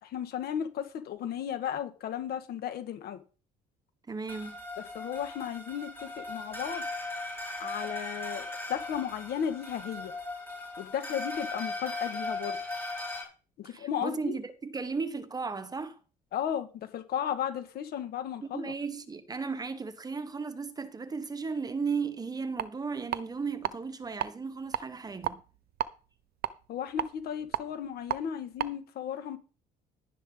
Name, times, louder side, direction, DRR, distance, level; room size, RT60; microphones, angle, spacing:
voice 1, 0.0-3.2 4.9-6.8 7.6-10.1 10.8-12.6 13.6-14.4 16.3-18.7 26.7-29.4, left 9 dB, 65° left, 1.8 m, -35 dB
voice 2, 4.1-4.6 13.6-16.0 18.4-25.4, right 5 dB, 20° right, 1.2 m, -35 dB
sound 1, 4.3-13.2, left 2 dB, 15° left, 7.2 m, -38 dB
sound 2, 22.6-22.7 23.1-23.7 24.1-24.3 24.7-25.9 26.4-28.2 28.6-28.7, right 12 dB, 65° right, 0.9 m, -32 dB
11.5 x 11.0 x 3.9 m
cardioid pair, 110°, 17 cm